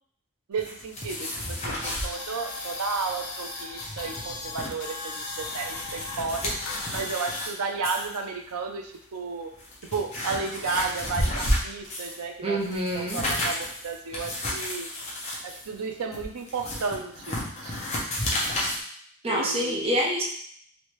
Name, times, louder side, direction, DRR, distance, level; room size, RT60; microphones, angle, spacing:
voice 1, 0.5-6.5 6.9-9.5 9.9-12.6 12.9-14.9 15.4-17.8 19.3-20.0, right 4 dB, 90° right, 4 dB, 0.5 m, -33 dB
sound 1, 0.6-2.1 2.5-2.8 3.1-3.2 3.6-4.7 5.2-7.5 7.8-8.2 8.9-9.0 9.5-12.2 12.6-18.8, left 1 dB, 30° left, 0.7 m, -32 dB
sound 2, 2.1-7.5, left 3 dB, 80° left, 0.6 m, -37 dB
voice 2, 12.4-13.2 19.2-20.2, equal, 25° right, -3 dB, 0.5 m, -26 dB
3.3 x 2.6 x 3.0 m, 0.63 s
head